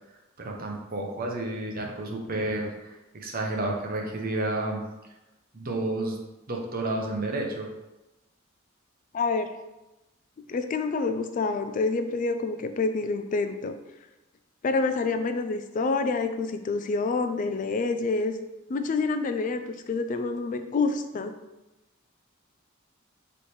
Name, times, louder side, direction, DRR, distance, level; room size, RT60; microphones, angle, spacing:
voice 1, 0.4-2.7 3.1-4.8 5.5-6.2 6.5-7.7, right 2 dB, 45° right, 1 dB, 0.7 m, -30 dB
voice 2, 9.1-9.5 10.4-13.8 14.6-18.3 18.7-21.3, left 3 dB, 40° left, 8 dB, 0.3 m, -27 dB
3.3 x 3.2 x 4.2 m, 1.0 s
head